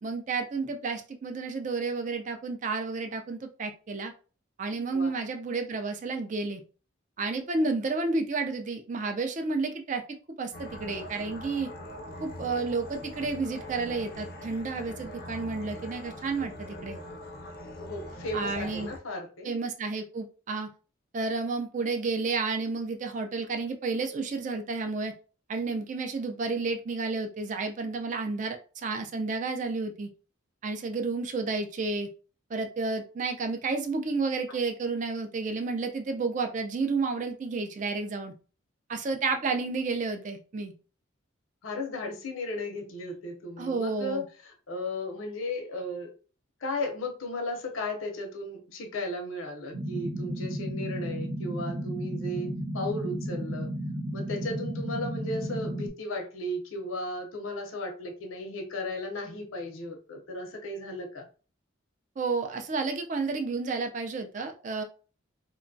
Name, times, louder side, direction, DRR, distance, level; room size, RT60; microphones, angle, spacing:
voice 1, 0.0-4.1 4.6-6.6 7.2-10.0 10.4-11.7 12.2-17.0 18.3-18.9 19.4-20.7 21.1-25.1 25.5-30.1 30.6-32.1 32.5-38.3 38.9-40.7 43.6-44.3 62.2-64.8, right 4 dB, 40° right, 6 dB, 0.4 m, -31 dB
sound 1, 10.5-19.0, left 1 dB, 50° left, 0.5 m, -42 dB
voice 2, 17.8-19.5 41.6-46.1 46.6-53.7 54.1-61.2, left 1 dB, 90° left, 3 dB, 0.7 m, -35 dB
sound 2, 49.7-55.9, equal, 65° right, 0.8 m, -33 dB
2.9 x 2.2 x 2.6 m, 0.37 s
head